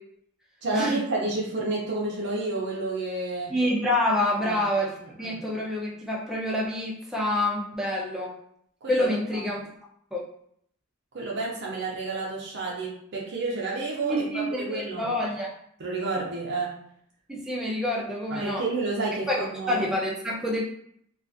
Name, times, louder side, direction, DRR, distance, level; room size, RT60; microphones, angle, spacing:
voice 1, 0.6-3.5 4.4-4.6 5.0-5.4 8.8-9.5 11.1-15.0 15.8-16.7 18.3-19.9, right 3 dB, 50° right, -3 dB, 0.5 m, -30 dB
voice 2, 3.5-8.3 8.9-9.7 10.1-10.3 14.0-15.5 17.3-18.6 19.3-20.6, left 1 dB, ahead, -4 dB, 0.5 m, -27 dB
2.4 x 2.3 x 2.5 m, 0.68 s
head